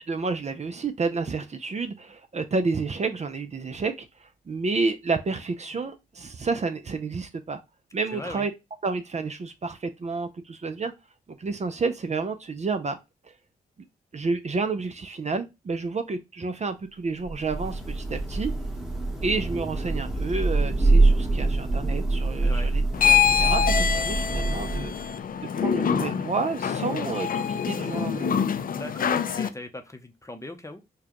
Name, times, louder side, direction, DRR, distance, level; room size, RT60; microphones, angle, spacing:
voice 1, 0.1-7.6 7.9-8.5 8.8-10.9 11.4-13.0 13.2-13.3 14.1-18.5 19.2-24.9 25.4-28.3, right 4 dB, 40° right, 0.5 m, -30 dB
voice 2, 8.1-8.5 22.4-22.7 28.7-30.8, left 2 dB, 15° left, 0.7 m, -39 dB
Thunder / Rain, 17.2-25.2, right 2 dB, ahead, 1.1 m, -25 dB
sound 1, 22.9-29.5, left 8 dB, 55° left, 0.4 m, -25 dB
4.7 x 2.3 x 2.9 m
cardioid pair, 60°, 18 cm